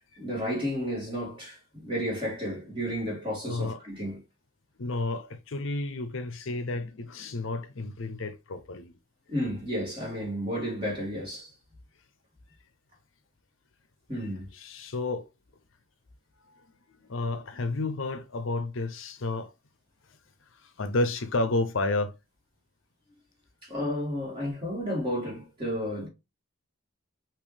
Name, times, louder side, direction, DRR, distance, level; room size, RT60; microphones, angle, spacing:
voice 1, 0.2-4.2 9.3-11.5 14.1-14.5 23.6-26.1, equal, 25° right, 2.4 m, -32 dB
voice 2, 3.5-3.8 4.8-8.9 14.2-15.3 16.5-16.6 17.0-19.5 20.5-22.2, left 2 dB, 65° left, 0.6 m, -31 dB
5.2 x 2.9 x 3.3 m
head